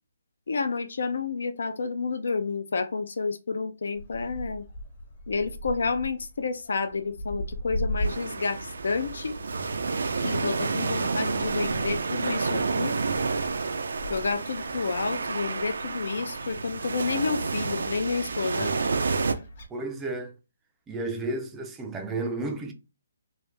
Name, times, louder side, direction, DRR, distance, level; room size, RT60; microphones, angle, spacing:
voice 1, 0.5-4.7 5.3-9.4 10.2-13.0 14.1-18.7, left 4 dB, 70° left, 0.6 m, -30 dB
Gull seagull, 3.9-19.7, equal, 40° left, 1.0 m, -40 dB
sound 1, 8.0-19.3, right 4 dB, 75° right, 0.5 m, -30 dB
voice 2, 18.5-18.9 19.7-20.3 20.9-22.7, right 2 dB, 10° right, 0.4 m, -32 dB
3.2 x 2.7 x 3.3 m
hypercardioid pair, 165°, 0 cm